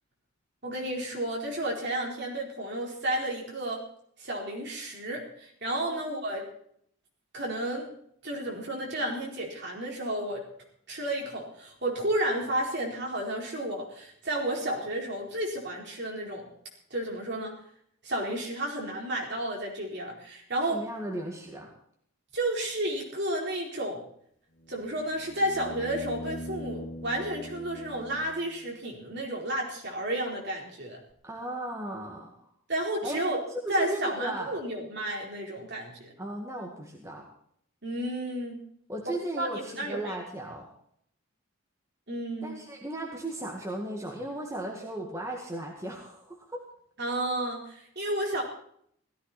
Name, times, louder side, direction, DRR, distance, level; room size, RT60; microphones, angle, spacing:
voice 1, 0.6-3.8 4.2-6.5 7.3-7.9 8.2-10.4 10.9-16.5 16.9-17.6 18.0-20.8 22.3-24.0 24.7-31.0 32.7-33.4 33.7-36.1 37.8-38.6 39.4-40.2 42.1-42.6 47.0-48.4, right 1 dB, 50° right, -1 dB, 4.3 m, -32 dB
voice 2, 20.7-21.7 31.2-32.5 33.0-33.2 33.5-34.6 36.2-37.3 38.9-40.7 42.4-46.6, right 1 dB, 15° right, -1 dB, 2.0 m, -36 dB
sound 1, 24.6-28.7 31.1-31.2, equal, 55° left, 2.7 m, -42 dB
17.0 x 14.5 x 4.3 m, 0.66 s
head